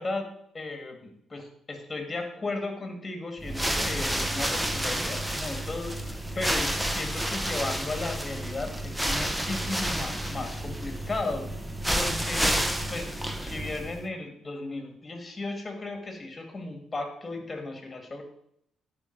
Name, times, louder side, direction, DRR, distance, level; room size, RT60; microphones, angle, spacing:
voice 1, 0.0-11.5 11.9-12.6 12.9-18.2, left 2 dB, 25° left, 4 dB, 2.1 m, -35 dB
sound 1, 3.4-14.1, right 1 dB, 5° right, 0.8 m, -30 dB
11.0 x 4.9 x 4.6 m, 0.73 s
cardioid pair, 90°, 0 cm